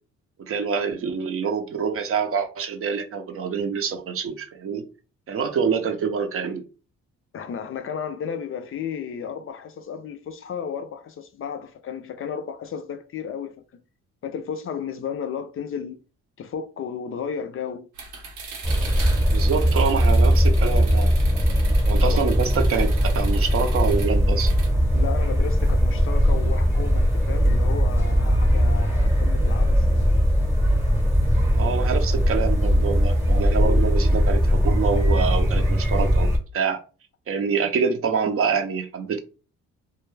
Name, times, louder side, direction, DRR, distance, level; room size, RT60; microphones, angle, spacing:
voice 1, 0.4-4.9 5.3-6.6 19.3-21.2 21.9-24.5 31.6-36.3 36.5-36.8 37.3-39.2, right 6 dB, 50° right, 0.5 m, -26 dB
voice 2, 7.3-13.8 14.2-16.0 16.4-17.9 22.0-22.2 24.9-30.1, left 7 dB, 45° left, 0.4 m, -33 dB
sound 1, 17.9-24.7, right 3 dB, 85° right, 0.8 m, -39 dB
sound 2, 18.6-36.4, equal, 10° right, 0.8 m, -20 dB
2.3 x 2.2 x 3.1 m
cardioid pair, 90°, 30 cm